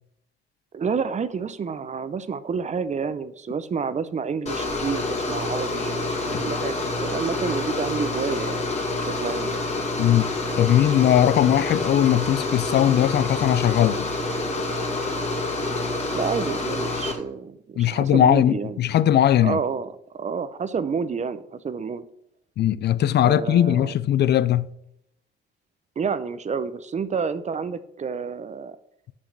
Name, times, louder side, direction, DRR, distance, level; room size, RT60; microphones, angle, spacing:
voice 1, 0.7-8.6 9.0-9.6 16.1-18.8 19.4-22.0 23.2-23.9 26.0-28.8, right 6 dB, 35° right, 0.6 m, -29 dB
sound 1, 4.5-17.1, left 2 dB, 35° left, 2.2 m, -27 dB
voice 2, 10.0-10.3 10.6-14.1 17.8-19.6 22.6-24.7, left 11 dB, 60° left, 0.4 m, -19 dB
6.2 x 6.2 x 5.9 m
cardioid pair, 90°, 20 cm